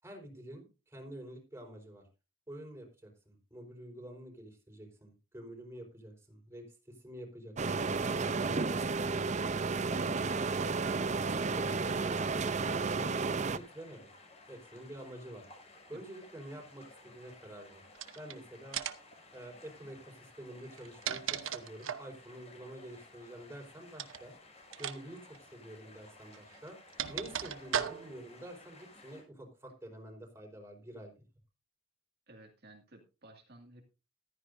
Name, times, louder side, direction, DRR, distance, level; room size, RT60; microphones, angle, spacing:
voice 1, 0.0-2.1 2.5-8.9 9.6-10.2 10.5-10.7 11.2-14.1 14.5-15.5 15.9-17.8 18.1-18.8 19.3-24.3 24.8-26.8 27.1-31.1, right 1 dB, 15° right, 2 dB, 4.4 m, -48 dB
sound 1, 7.6-13.6, right 4 dB, 35° right, 0.6 m, -32 dB
sound 2, 10.2-29.2, left 2 dB, 30° left, 5.6 m, -57 dB
sound 3, 17.9-18.3 18.7-19.1 20.6-22.1 23.9-24.2 24.7-25.0 25.2-25.4 26.3-28.3, right 8 dB, 80° right, 1.0 m, -37 dB
voice 2, 32.3-33.8, right 1 dB, 55° right, 2 dB, 2.2 m, -55 dB
15.0 x 14.0 x 2.6 m, 0.31 s
head